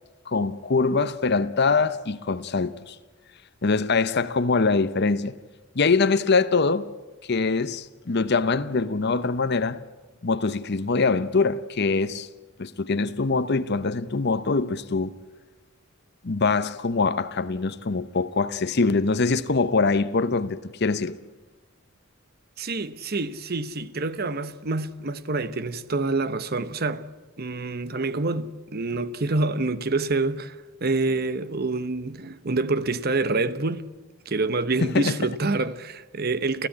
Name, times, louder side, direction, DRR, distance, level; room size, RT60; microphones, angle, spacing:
voice 1, 0.3-3.0 3.6-5.4 5.7-6.9 7.3-9.8 10.2-12.3 12.6-15.1 16.2-21.2 34.8-35.2, left 4 dB, 55° left, 0.8 m, -23 dB
voice 2, 22.6-27.1 27.4-33.9 34.3-36.7, right 3 dB, 50° right, 1.0 m, -27 dB
29.0 x 15.0 x 8.6 m
head